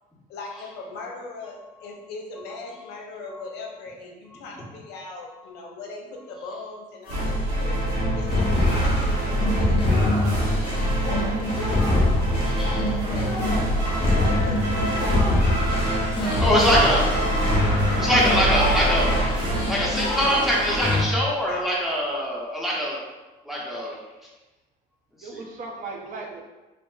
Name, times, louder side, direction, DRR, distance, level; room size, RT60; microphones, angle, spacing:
voice 1, 0.3-7.9 8.2-12.3 12.6-13.4 13.8-15.5 16.1-16.5 21.5-21.6, left 3 dB, 85° left, 0 dB, 0.5 m, -39 dB
sound 1, 7.1-20.7, right 1 dB, 80° right, 0.9 m, -25 dB
sound 2, 8.2-21.0, left 2 dB, 35° left, 0.6 m, -25 dB
voice 2, 13.8-14.5 14.8-15.2 17.6-18.2 18.5-18.7 25.2-26.4, right 3 dB, 50° right, 0 dB, 0.5 m, -38 dB
voice 3, 16.4-17.0 17.4-19.1 19.6-23.0 23.5-23.9 25.2-25.4, equal, ahead, -5 dB, 0.6 m, -24 dB
2.6 x 2.3 x 2.3 m, 1.1 s
cardioid pair, 110°, 17 cm